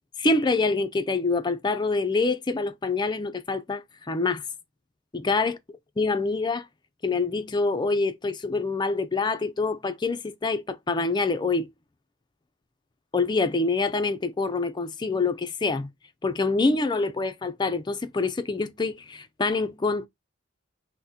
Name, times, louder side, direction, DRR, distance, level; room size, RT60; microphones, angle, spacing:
voice 1, 0.2-4.4 5.1-5.6 6.0-6.7 7.0-11.7 13.1-15.9 16.2-20.1, left 3 dB, 20° left, 0.4 m, -26 dB
5.8 x 2.1 x 2.7 m
head